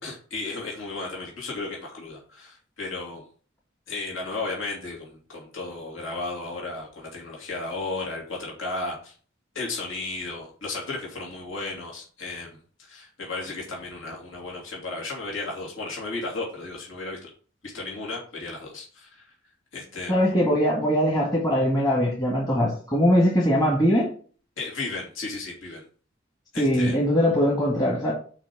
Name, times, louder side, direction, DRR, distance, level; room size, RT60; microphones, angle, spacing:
voice 1, 0.0-3.2 3.9-9.1 9.5-17.3 17.7-19.2 19.7-20.3 24.6-25.9 26.5-27.0, left 3 dB, 70° left, 2.9 m, -34 dB
voice 2, 20.1-24.1 26.6-28.1, equal, 20° left, 1.7 m, -21 dB
6.0 x 5.1 x 6.1 m
head